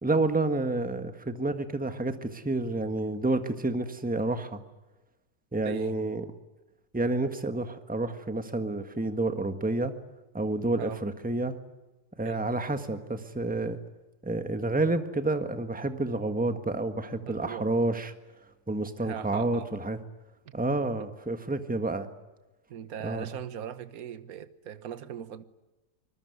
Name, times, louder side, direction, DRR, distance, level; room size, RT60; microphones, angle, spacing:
voice 1, 0.0-4.6 5.5-6.2 6.9-9.9 10.3-11.5 12.2-13.8 14.2-18.1 18.7-20.0 20.5-22.1 23.0-23.3, right 2 dB, 5° right, 1.4 m, -29 dB
voice 2, 5.6-6.0 10.8-11.0 12.2-12.5 17.2-17.7 19.0-19.7 20.4-20.6 22.7-25.4, right 9 dB, 60° right, 1.5 m, -39 dB
25.5 x 20.5 x 9.5 m
omnidirectional pair, 1.9 m